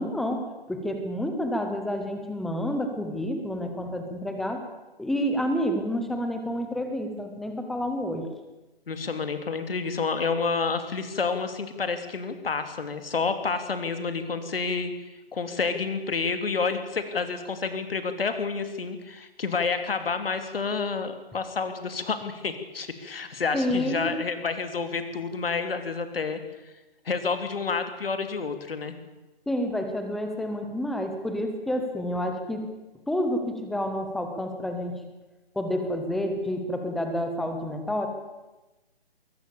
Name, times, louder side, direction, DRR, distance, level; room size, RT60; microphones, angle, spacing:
voice 1, 0.0-4.7 5.0-8.3 23.5-24.2 29.5-32.7 33.1-34.9 35.6-38.1, equal, ahead, 5 dB, 0.6 m, -29 dB
voice 2, 8.9-14.9 15.3-26.4 27.0-28.9, left 4 dB, 65° left, 8 dB, 3.0 m, -29 dB
22.0 x 18.0 x 7.0 m, 1.1 s
hypercardioid pair, 155°, 31 cm